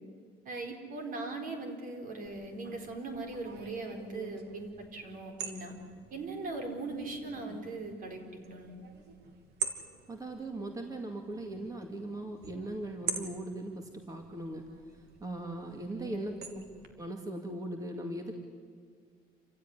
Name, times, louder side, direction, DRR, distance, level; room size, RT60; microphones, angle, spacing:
voice 1, 0.4-5.8 6.1-8.7 15.9-16.2, right 2 dB, 55° right, 4 dB, 4.6 m, -40 dB
sound 1, 2.3-16.9, right 6 dB, 75° right, 2.7 m, -45 dB
voice 2, 10.1-14.6 15.2-16.6 17.0-18.3, right 1 dB, 20° right, 3 dB, 2.4 m, -39 dB
28.0 x 16.0 x 9.9 m, 2.1 s
cardioid pair, 110°, 17 cm